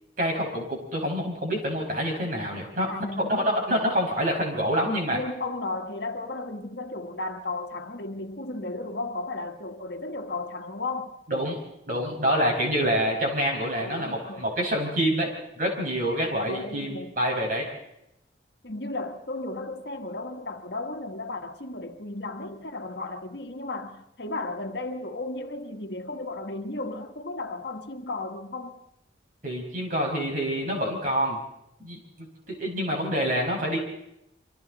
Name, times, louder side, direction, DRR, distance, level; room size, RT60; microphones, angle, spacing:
voice 1, 0.2-2.9 3.2-5.2 11.3-11.6 11.9-17.7 29.4-31.4 31.8-33.8, equal, 45° right, 5.8 m, -27 dB
voice 2, 2.9-3.6 5.1-11.2 13.8-14.4 16.4-17.1 18.6-28.8, left 2 dB, 65° left, 1.5 m, -34 dB
27.5 x 25.0 x 4.1 m
head